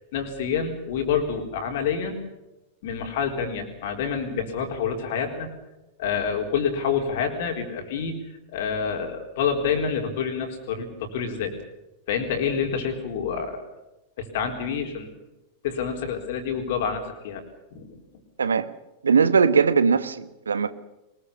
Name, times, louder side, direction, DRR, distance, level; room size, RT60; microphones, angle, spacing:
voice 1, 0.1-2.2 2.8-5.5 6.0-8.1 8.5-11.6 12.1-13.6 14.2-15.1 15.6-17.4 17.7-18.0, left 6 dB, 55° left, 4.2 m, -27 dB
voice 2, 19.0-20.7, right 5 dB, 70° right, 1.3 m, -20 dB
23.0 x 21.5 x 7.0 m
figure-of-eight pair, 90°, 0 cm